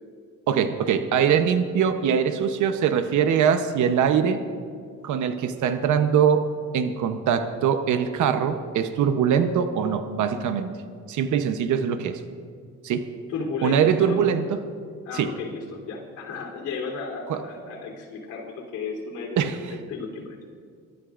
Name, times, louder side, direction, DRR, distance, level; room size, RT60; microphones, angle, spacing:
voice 1, 0.5-4.4 5.0-6.5 6.7-10.7 11.1-12.2 12.8-13.0 13.6-14.6 15.1-15.3 17.3-17.4 19.4-19.7, right 7 dB, 75° right, 8 dB, 0.9 m, -22 dB
voice 2, 13.3-14.2 15.0-19.6 19.9-20.6, left 4 dB, 90° left, -1 dB, 3.6 m, -34 dB
23.5 x 13.0 x 2.5 m, 2.2 s
cardioid pair, 90°, 30 cm